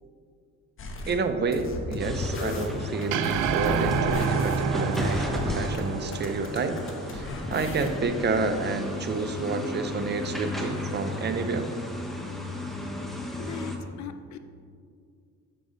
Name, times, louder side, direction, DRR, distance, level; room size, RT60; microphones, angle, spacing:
sound 1, 0.8-1.2 1.5-5.8 6.1-8.1, left 2 dB, 45° left, 0.9 m, -35 dB
voice 1, 1.1-6.7 7.1-11.7, right 4 dB, 35° right, 8 dB, 0.6 m, -29 dB
sound 2, 2.0-13.8, left 1 dB, ahead, 0.8 m, -34 dB
sound 3, 3.1-7.5, right 6 dB, 85° right, 0.5 m, -28 dB
voice 2, 13.4-14.4, left 8 dB, 65° left, 9 dB, 0.5 m, -39 dB
6.9 x 5.0 x 3.8 m, 2.3 s
cardioid pair, 90°, 30 cm